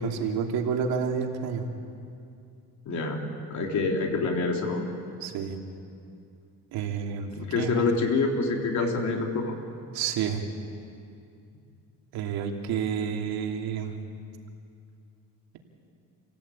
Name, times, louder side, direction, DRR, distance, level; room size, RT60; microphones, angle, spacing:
voice 1, 0.0-1.7 5.2-5.6 6.7-7.8 9.9-10.4 12.1-14.0, right 6 dB, 80° right, 3 dB, 2.7 m, -29 dB
voice 2, 2.9-3.2 3.5-4.8 7.3-9.5, left 3 dB, 50° left, 2 dB, 3.8 m, -26 dB
28.0 x 17.0 x 8.6 m, 2.5 s
cardioid pair, 125°, 37 cm